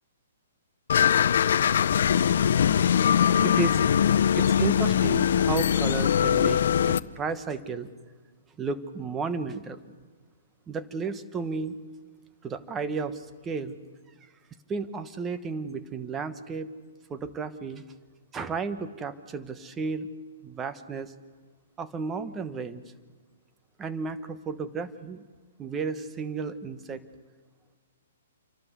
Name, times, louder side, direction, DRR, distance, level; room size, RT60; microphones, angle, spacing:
sound 1, 0.9-7.0, left 8 dB, 65° left, 0.6 m, -22 dB
voice 1, 3.4-3.8 4.3-7.9 8.6-9.8 10.7-11.8 12.4-13.7 14.7-16.7 17.1-17.8 18.3-20.1 20.4-21.1 21.8-22.8 23.8-25.2 25.6-27.0, right 4 dB, 15° right, 11 dB, 1.1 m, -33 dB
28.0 x 12.0 x 8.1 m, 1.4 s
hypercardioid pair, 145°, 0 cm